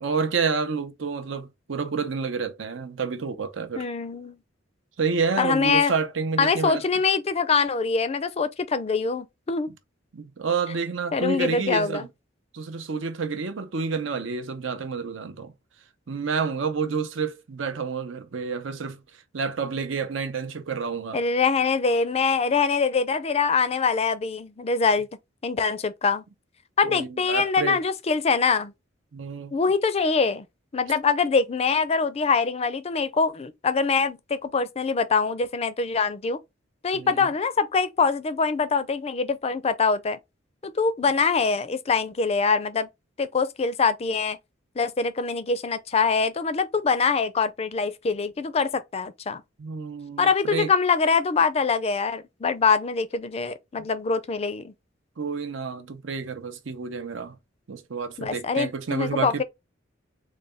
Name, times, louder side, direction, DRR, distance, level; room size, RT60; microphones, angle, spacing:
voice 1, 0.0-3.9 5.0-6.8 10.1-12.1 12.5-15.5 16.1-19.0 19.3-21.2 26.8-27.8 29.1-29.5 36.9-37.3 49.6-50.7 55.2-57.4 57.7-59.4, right 5 dB, 75° right, 0.6 m, -29 dB
voice 2, 3.8-4.4 5.4-5.9 6.4-9.7 11.1-12.1 21.1-25.1 25.4-26.2 26.8-28.7 29.5-30.4 30.7-36.4 36.8-40.2 40.6-42.9 43.2-44.4 44.8-49.4 50.2-54.7 58.2-59.4, left 5 dB, 35° left, 0.4 m, -24 dB
4.0 x 2.2 x 3.4 m
head